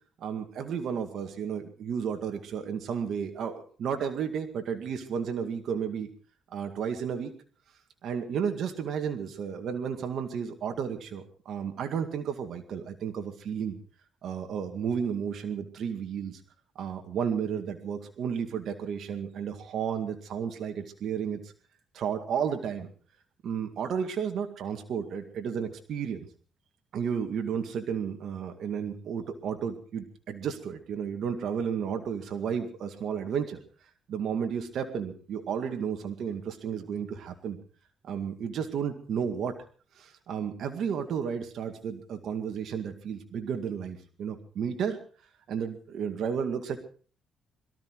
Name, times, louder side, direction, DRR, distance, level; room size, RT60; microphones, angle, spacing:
voice 1, 0.2-6.1 6.5-7.3 8.0-13.8 14.2-16.4 16.8-21.5 21.9-22.9 23.4-26.3 26.9-33.6 34.1-37.6 38.0-39.6 39.9-45.0 45.5-46.8, right 7 dB, 70° right, 5 dB, 2.1 m, -32 dB
22.5 x 13.5 x 4.7 m, 0.43 s
cardioid pair, 90°, 0 cm